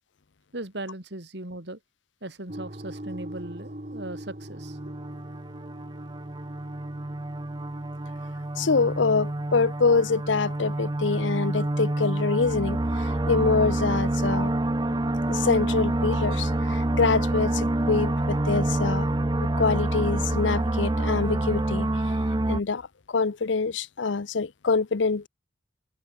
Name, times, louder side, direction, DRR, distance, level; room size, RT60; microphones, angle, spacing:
voice 1, 0.5-1.8 2.2-4.9, right 1 dB, 65° right, 3.0 m, -38 dB
sound 1, 2.5-16.2, right 1 dB, 40° right, 2.3 m, -44 dB
sound 2, 4.5-22.6, right 1 dB, 25° right, 0.7 m, -27 dB
voice 2, 8.6-14.5 14.9-15.0 15.3-19.1 19.4-22.2 22.5-25.3, left 4 dB, 85° left, 0.7 m, -25 dB
head